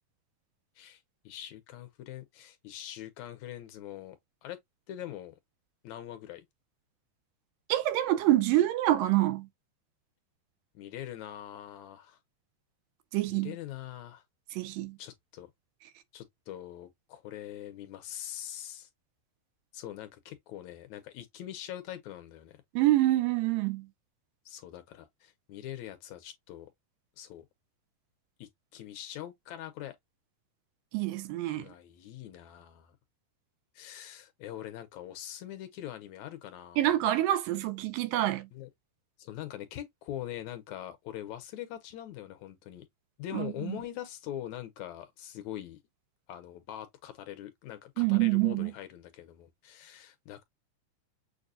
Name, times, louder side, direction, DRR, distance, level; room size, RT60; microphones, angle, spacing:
voice 1, 1.3-4.6 4.9-5.4 5.8-6.5 10.7-12.2 13.3-14.2 15.0-15.5 16.1-18.9 19.7-22.6 24.5-26.7 27.2-27.5 28.4-30.0 31.5-33.0 33.8-36.9 38.1-38.7 39.2-42.9 43.2-45.8 46.3-50.4, left 12 dB, 75° left, 1.9 m, -43 dB
voice 2, 7.7-9.5 13.1-13.5 14.5-15.0 22.8-23.9 30.9-31.7 36.8-38.5 43.3-43.8 48.0-48.7, right 15 dB, 85° right, 2.4 m, -26 dB
6.6 x 2.3 x 2.5 m
omnidirectional pair, 3.8 m